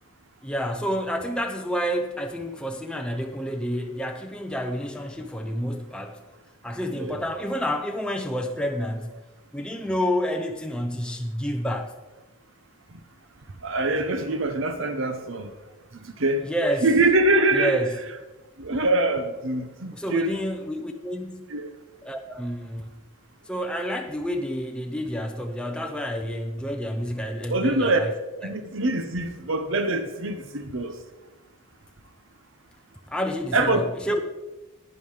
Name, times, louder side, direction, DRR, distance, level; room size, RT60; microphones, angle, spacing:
voice 1, 0.4-6.2 6.6-9.2 9.5-11.9 16.4-16.9 17.5-18.0 19.9-21.4 22.0-22.9 23.5-28.1 28.4-28.5 33.1-34.2, equal, 5° left, 0.5 m, -29 dB
voice 2, 13.6-15.5 16.2-16.4 16.8-17.8 18.6-20.4 21.5-21.7 27.5-28.0 28.4-30.9 33.5-33.8, right 2 dB, 60° right, 0.8 m, -24 dB
11.0 x 9.4 x 4.9 m
head